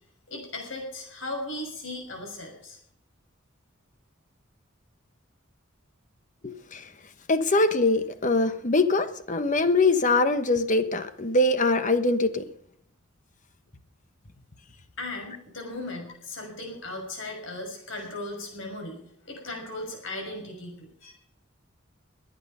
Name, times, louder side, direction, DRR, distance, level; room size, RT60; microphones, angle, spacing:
voice 1, 0.3-2.8 15.0-21.1, left 2 dB, 70° left, 3 dB, 5.9 m, -37 dB
voice 2, 6.4-6.8 7.3-12.4, left 2 dB, 40° left, 10 dB, 1.2 m, -23 dB
22.0 x 9.0 x 5.6 m, 0.68 s
head